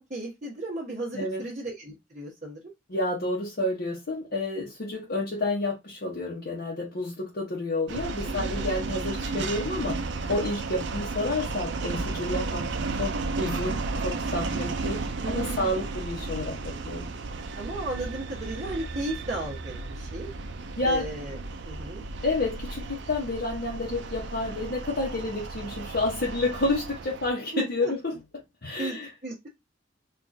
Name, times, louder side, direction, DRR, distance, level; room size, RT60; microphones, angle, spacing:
voice 1, 0.1-2.6 8.2-8.6 15.2-15.8 17.5-20.3 20.8-21.4 21.6-22.0 27.5-27.9 28.8-29.0 29.2-29.5, right 2 dB, 40° right, 1.1 m, -35 dB
voice 2, 2.9-12.7 13.0-17.1 20.8-21.1 22.2-28.2 28.6-29.1, left 2 dB, 60° left, 0.9 m, -30 dB
sound 1, 7.9-27.3, right 3 dB, 65° right, 0.5 m, -33 dB
4.5 x 2.5 x 2.6 m
head